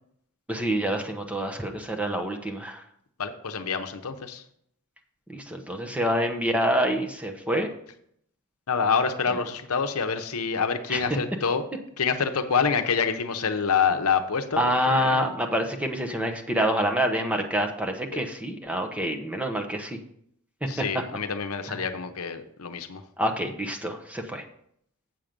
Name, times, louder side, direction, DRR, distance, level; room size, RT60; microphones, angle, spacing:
voice 1, 0.5-2.8 5.3-7.7 10.9-11.0 14.6-20.0 20.6-20.7 21.7-21.8 23.2-24.4, equal, 5° right, 3 dB, 0.9 m, -27 dB
voice 2, 3.2-4.4 8.7-11.7 12.0-15.3 18.1-18.2 20.7-23.0, left 6 dB, 75° left, 7 dB, 0.8 m, -27 dB
7.6 x 7.3 x 5.2 m, 0.70 s
head